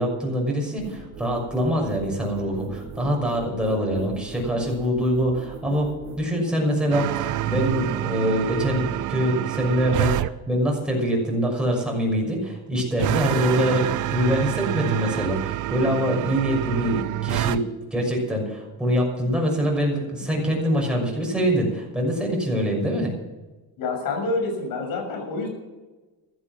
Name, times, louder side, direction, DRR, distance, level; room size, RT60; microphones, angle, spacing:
voice 1, 0.0-5.9 6.2-17.6 17.9-23.1, equal, ahead, -1 dB, 6.3 m, -24 dB
sound 1, 0.8-6.2, right 5 dB, 90° right, 4.8 m, -40 dB
sound 2, 6.9-10.3 13.0-17.6, right 15 dB, 55° right, 0.7 m, -27 dB
voice 2, 23.8-25.5, left 3 dB, 65° left, 4 dB, 6.6 m, -27 dB
15.0 x 12.0 x 6.2 m, 1.2 s
cardioid pair, 130°, 37 cm